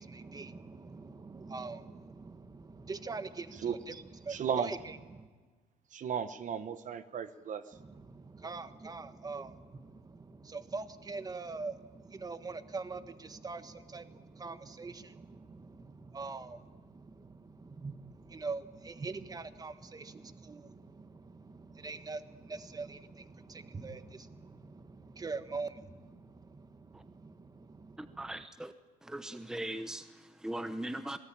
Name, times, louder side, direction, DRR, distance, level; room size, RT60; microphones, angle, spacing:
voice 1, 0.0-5.3 7.8-28.5, right 4 dB, 20° right, 10 dB, 1.5 m, -43 dB
voice 2, 4.3-4.7 5.9-7.8, right 7 dB, 50° right, 11 dB, 1.2 m, -35 dB
voice 3, 28.0-28.7 29.0-31.2, right 1 dB, 5° right, 10 dB, 0.9 m, -40 dB
26.5 x 18.5 x 8.9 m, 1.4 s
cardioid pair, 110°, 17 cm